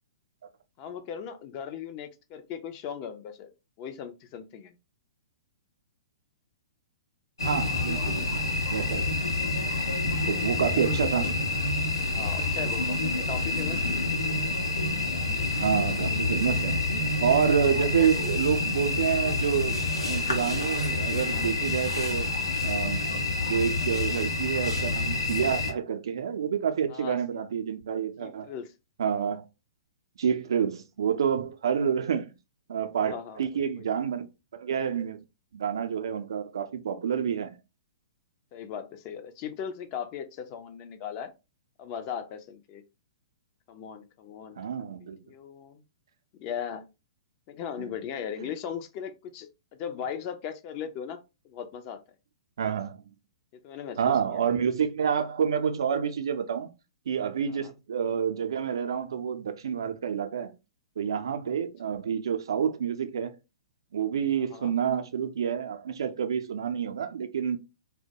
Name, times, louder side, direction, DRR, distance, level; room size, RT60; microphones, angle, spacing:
voice 1, 0.8-3.5 3.8-4.7 10.7-11.2 12.1-14.1 18.0-18.4 26.9-27.4 28.2-28.7 33.0-33.9 38.5-41.3 41.8-42.8 43.7-44.9 45.2-45.8 46.4-46.8 47.5-49.5 49.8-51.2 51.4-52.0 53.6-54.4 57.5-57.7 64.5-64.7, left 8 dB, 35° left, 0.4 m, -38 dB
sound 1, 7.4-25.7, left 2 dB, 90° left, 0.7 m, -28 dB
voice 2, 7.4-8.3 8.7-9.1 10.3-11.3 15.6-16.7 17.2-22.3 22.6-28.5 29.0-29.4 30.2-32.3 32.7-34.3 34.5-35.2 35.5-37.6 44.6-45.2 47.8-47.9 52.6-53.0 54.0-56.7 57.1-60.5 61.0-63.3 63.9-67.6, right 7 dB, 65° right, 0.4 m, -28 dB
2.1 x 2.1 x 2.7 m
figure-of-eight pair, 115°, 3 cm